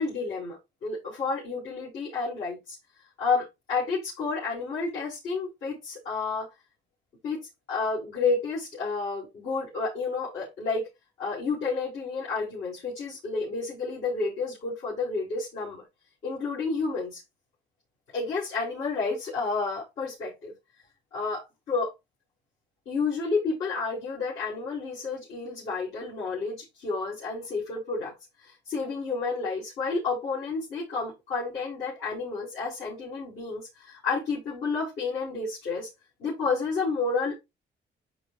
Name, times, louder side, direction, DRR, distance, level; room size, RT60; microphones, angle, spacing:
voice 1, 0.0-2.8 3.2-6.5 7.2-10.9 11.2-15.8 16.2-17.2 18.1-20.5 21.1-21.9 22.9-28.1 28.4-35.9 36.2-37.4, left 4 dB, 85° left, 5.4 m, -30 dB
11.5 x 5.1 x 2.5 m
cardioid pair, 90°, 20 cm